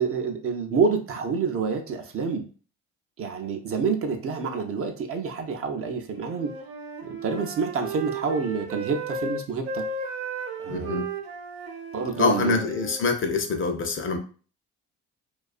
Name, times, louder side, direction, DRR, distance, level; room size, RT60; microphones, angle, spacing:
voice 1, 0.0-2.4 3.2-6.5 7.0-9.8 10.6-11.0 11.9-12.7, right 5 dB, 45° right, 4 dB, 0.5 m, -28 dB
Wind instrument woodwind instrument, 6.2-13.1, right 3 dB, 85° right, 0.6 m, -35 dB
voice 2, 10.7-11.0 12.2-14.2, left 4 dB, 40° left, 5 dB, 0.5 m, -25 dB
2.4 x 2.3 x 2.4 m, 0.40 s
hypercardioid pair, 55°, 33 cm